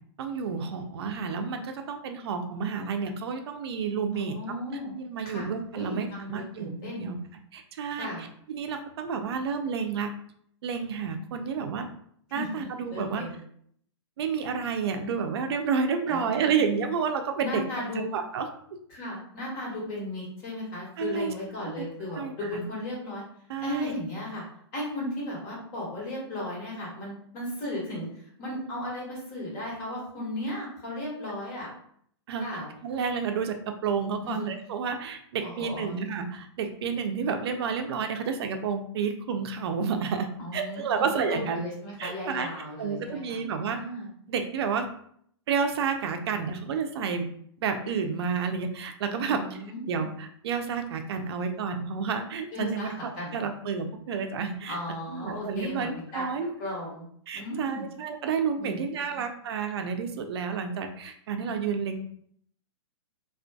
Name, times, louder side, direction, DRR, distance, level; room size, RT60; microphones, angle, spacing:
voice 1, 0.2-4.4 5.0-7.2 7.5-10.2 10.6-11.9 12.3-13.2 14.2-17.6 17.9-18.5 21.0-21.3 21.8-21.9 22.1-22.6 23.5-23.9 32.3-41.6 42.0-42.5 42.8-43.8 44.3-44.9 45.5-47.3 47.6-49.4 49.9-54.8 55.1-56.5 57.3-62.0, right 6 dB, 60° right, 6 dB, 0.4 m, -30 dB
voice 2, 4.1-4.9 5.2-5.5 5.7-7.0 7.9-8.3 12.3-13.4 16.1-16.6 17.4-18.0 18.9-23.2 23.6-24.4 24.7-28.1 28.4-31.7 32.4-32.7 34.2-34.5 35.4-36.0 40.4-44.1 49.2-49.8 52.5-53.5 54.7-56.3 56.6-57.0 57.3-57.9 58.6-59.2, left 1 dB, 45° left, -4 dB, 1.3 m, -36 dB
2.5 x 2.3 x 2.2 m, 0.65 s
hypercardioid pair, 130°, 15 cm